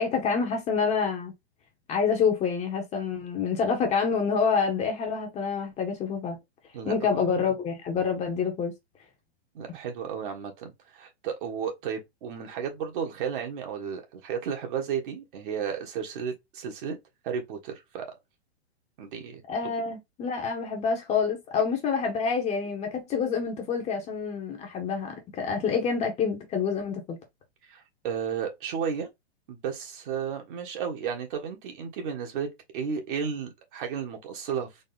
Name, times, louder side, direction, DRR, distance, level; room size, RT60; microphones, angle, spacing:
voice 1, 0.0-1.3 1.9-6.4 6.8-8.7 19.5-27.2, left 6 dB, 20° left, 1.0 m, -27 dB
voice 2, 6.7-7.5 9.5-17.0 17.2-18.2 19.0-19.4 27.7-29.1 29.5-32.5 32.7-34.7, right 7 dB, 50° right, 1.5 m, -33 dB
4.1 x 2.3 x 3.8 m
hypercardioid pair, 140°, 33 cm